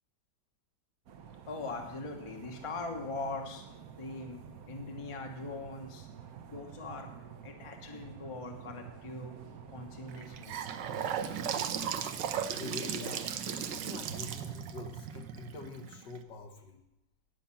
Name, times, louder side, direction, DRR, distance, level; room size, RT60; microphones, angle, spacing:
sound 1, 1.1-14.5, right 7 dB, 60° right, 1.1 m, -49 dB
voice 1, 1.4-3.7 4.0-4.4 4.7-6.1 6.5-7.1 7.4-9.3 9.7-10.8, left 3 dB, 20° left, 3 dB, 0.9 m, -41 dB
Gurgling / Sink (filling or washing) / Bathtub (filling or washing), 10.1-16.2, right 8 dB, 80° right, 1.3 m, -36 dB
voice 2, 12.5-16.8, left 3 dB, 75° left, 3 dB, 1.9 m, -45 dB
10.5 x 5.7 x 7.0 m, 0.88 s
omnidirectional pair, 1.9 m